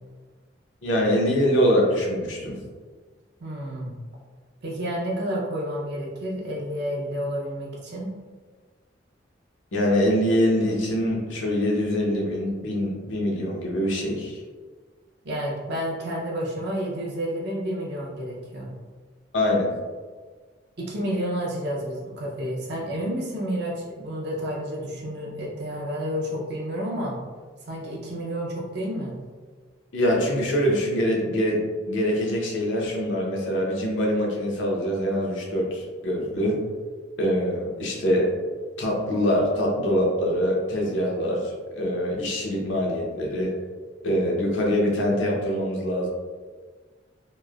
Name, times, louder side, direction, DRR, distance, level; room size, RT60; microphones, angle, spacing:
voice 1, 0.8-2.6 9.7-14.4 19.3-19.7 29.9-36.6 37.2-38.3 38.8-43.5 44.0-46.1, equal, 90° left, -2 dB, 0.6 m, -24 dB
voice 2, 3.4-3.9 4.6-8.1 15.2-18.7 20.8-27.2 27.7-29.1, equal, 60° right, -3 dB, 0.6 m, -30 dB
3.0 x 2.0 x 2.3 m, 1.5 s
head